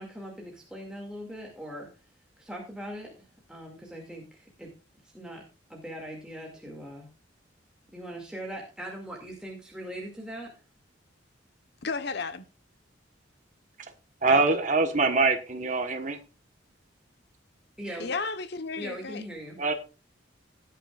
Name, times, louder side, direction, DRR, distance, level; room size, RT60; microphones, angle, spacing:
voice 1, 0.0-1.9 2.4-3.1 3.5-4.7 5.1-5.4 5.7-7.1 7.9-10.5 17.8-18.1 18.8-19.6, equal, 5° right, 2.3 m, -40 dB
voice 2, 11.8-12.4 14.3-14.6 18.0-19.2, left 4 dB, 60° left, 1.1 m, -33 dB
voice 3, 14.2-16.2 19.6-19.7, right 3 dB, 40° right, 1.3 m, -24 dB
17.5 x 9.1 x 2.4 m
head